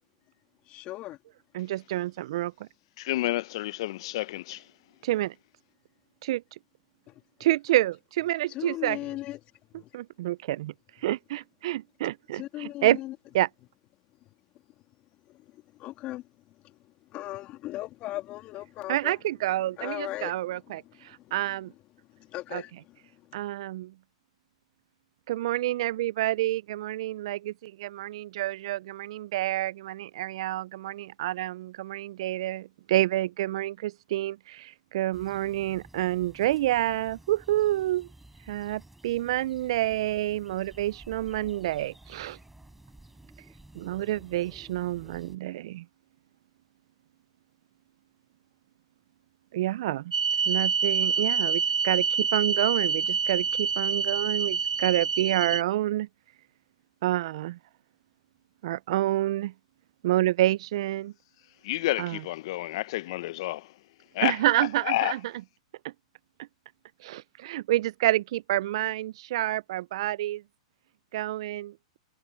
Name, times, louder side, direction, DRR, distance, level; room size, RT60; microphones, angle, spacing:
voice 1, 0.7-1.2 7.1-7.2 8.5-9.4 9.7-9.9 12.3-13.1 15.3-19.2 19.8-21.6 22.1-23.4, left 16 dB, 35° left, 2.9 m, -39 dB
voice 2, 1.5-2.7 5.0-5.3 6.2-6.4 7.4-9.0 9.9-10.7 11.0-13.0 13.3-13.5 18.9-21.7 22.5-22.6 23.3-23.9 25.3-38.1 38.5-42.4 43.8-45.8 49.5-50.1 50.5-56.1 57.0-57.6 58.6-59.5 60.0-61.1 62.0-62.2 64.2-65.2 65.8-65.9 67.0-70.4 71.1-71.7, right 15 dB, 60° right, 0.5 m, -28 dB
voice 3, 3.0-4.7 61.6-63.7 64.1-65.2, left 17 dB, 55° left, 1.0 m, -30 dB
sound 1, 35.1-45.4, right 1 dB, 5° right, 7.3 m, -53 dB
sound 2, 50.1-55.6, right 6 dB, 90° right, 0.9 m, -27 dB
hypercardioid pair, 115°, 3 cm